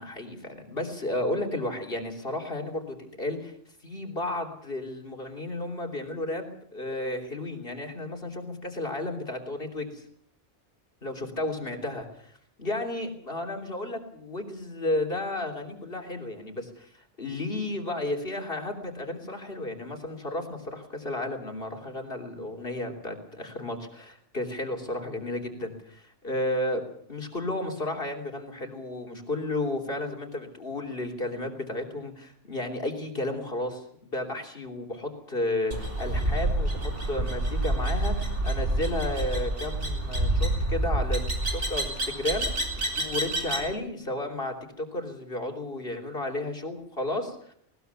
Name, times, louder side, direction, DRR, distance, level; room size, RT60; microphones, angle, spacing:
voice 1, 0.0-3.5 3.8-10.0 11.0-33.8 34.1-41.2 41.5-47.5, left 1 dB, 50° left, 3 dB, 3.5 m, -33 dB
sound 1, 35.7-43.7, right 1 dB, 75° right, 4.1 m, -28 dB
20.0 x 19.5 x 6.9 m, 0.65 s
omnidirectional pair, 1.2 m